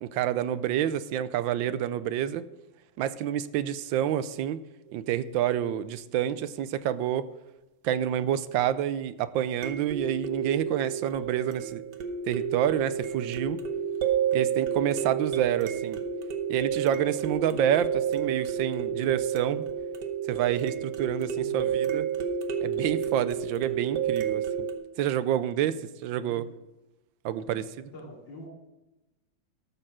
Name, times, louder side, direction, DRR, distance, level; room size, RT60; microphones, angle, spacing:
voice 1, 0.0-2.4 3.0-4.6 4.9-7.3 7.8-11.8 12.3-13.6 14.3-16.0 16.5-19.7 20.3-22.1 22.6-24.7 25.0-25.8 26.0-26.4 27.2-27.6, right 10 dB, 80° right, 14 dB, 1.3 m, -28 dB
sound 1, 4.9-5.0 9.6-24.7, right 8 dB, 60° right, 1.6 m, -30 dB
voice 2, 21.3-21.8 26.2-26.6 27.4-27.6 27.9-28.5, left 1 dB, 70° left, -2 dB, 3.2 m, -46 dB
13.0 x 6.9 x 6.1 m, 1.0 s
omnidirectional pair, 2.1 m